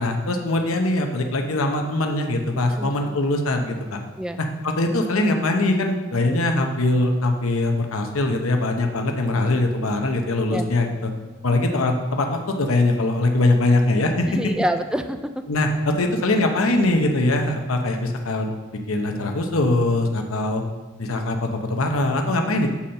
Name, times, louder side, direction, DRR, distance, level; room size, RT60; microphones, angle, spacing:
voice 1, 0.0-4.0 4.4-11.1 11.4-14.3 15.5-18.5 18.9-20.6 21.0-22.7, left 2 dB, 80° left, 3 dB, 0.9 m, -22 dB
voice 2, 2.8-3.2 4.2-4.4 10.5-10.7 14.3-15.4, equal, 5° right, 8 dB, 0.4 m, -27 dB
7.1 x 4.3 x 6.4 m, 1.2 s
head